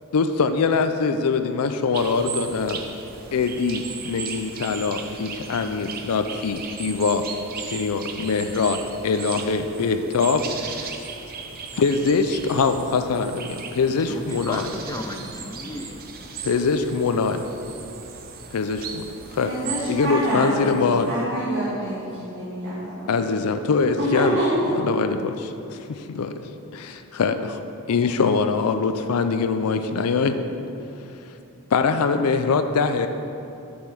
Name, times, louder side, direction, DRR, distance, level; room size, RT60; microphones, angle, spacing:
voice 1, 0.1-2.8 3.3-7.2 7.6-8.8 9.0-10.9 11.7-14.6 16.4-17.4 18.5-19.5 19.9-21.1 23.1-24.4 24.8-26.3 26.7-27.6 27.9-30.4 31.7-33.1, left 4 dB, 80° left, 8 dB, 0.4 m, -23 dB
sound 1, 1.9-21.2, right 6 dB, 40° right, 0.6 m, -37 dB
voice 2, 14.0-15.9 16.2-16.3, left 1 dB, 15° left, 5 dB, 0.5 m, -34 dB
voice 3, 19.4-20.7 21.1-23.1 24.0-24.7, right 1 dB, 60° right, -9 dB, 1.8 m, -26 dB
7.4 x 5.5 x 6.1 m, 2.8 s
head